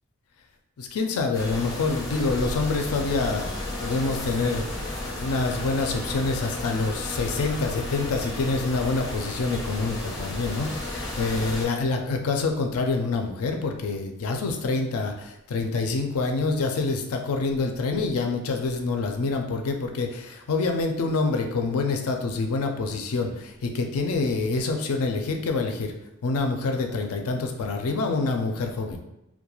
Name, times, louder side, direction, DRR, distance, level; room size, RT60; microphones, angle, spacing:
voice 1, 0.8-3.5 3.8-4.7 5.2-25.9 26.2-29.0, left 3 dB, 70° left, 4 dB, 0.4 m, -26 dB
sound 1, 1.3-11.7, left 1 dB, 15° left, 0.5 m, -33 dB
2.3 x 2.2 x 2.9 m, 0.88 s
head